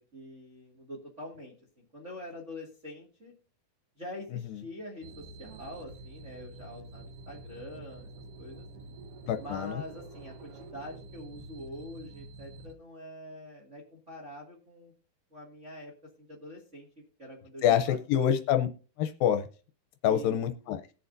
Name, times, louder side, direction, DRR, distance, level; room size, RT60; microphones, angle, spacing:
voice 1, 0.0-3.3 4.0-8.1 8.4-8.6 9.4-14.9 15.3-15.9 16.2-16.9 17.2-18.4 20.0-20.4, left 1 dB, 25° right, -1 dB, 1.6 m, -45 dB
sound 1, 5.0-12.7, right 2 dB, 85° right, 1.3 m, -47 dB
voice 2, 9.3-9.8 17.6-18.7 19.0-19.5 20.0-20.8, left 10 dB, 80° left, 8 dB, 2.3 m, -26 dB
20.0 x 6.9 x 2.6 m, 0.36 s
omnidirectional pair, 4.3 m